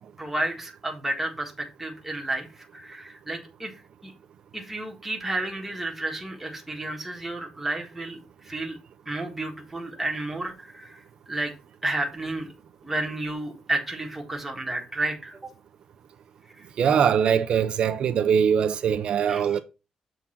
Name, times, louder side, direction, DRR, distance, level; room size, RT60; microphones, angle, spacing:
voice 1, 0.2-3.7 4.0-4.1 4.5-8.2 8.4-8.8 9.1-11.0 11.3-11.5 11.8-12.5 12.8-15.4 19.3-19.6, right 2 dB, 10° right, 1.6 m, -31 dB
voice 2, 16.8-19.6, right 7 dB, 60° right, 0.4 m, -22 dB
7.0 x 3.7 x 5.7 m
wide cardioid pair, 160°, 2 cm